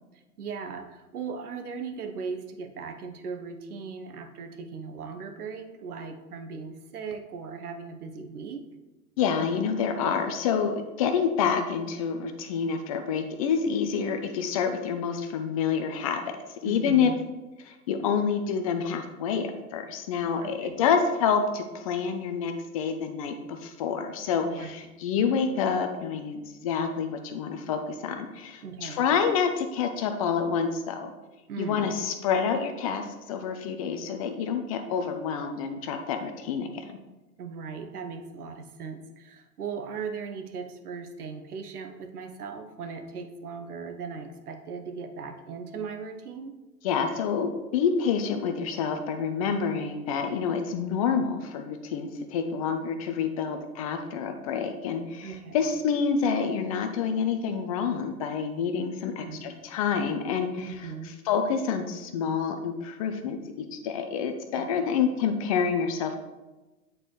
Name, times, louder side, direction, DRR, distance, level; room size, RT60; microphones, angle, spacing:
voice 1, 0.1-8.6 16.6-17.2 20.4-20.9 24.4-24.7 28.6-29.1 31.5-31.9 37.4-46.5 55.2-55.6 59.2-59.6 60.6-61.1 64.5-64.9, right 5 dB, 80° right, 6 dB, 1.0 m, -38 dB
voice 2, 9.2-16.4 16.6-17.1 17.6-31.1 31.6-37.0 46.8-60.7 61.3-66.2, left 6 dB, 25° left, 6 dB, 0.4 m, -28 dB
8.9 x 4.2 x 3.1 m, 1.1 s
hypercardioid pair, 110°, 45 cm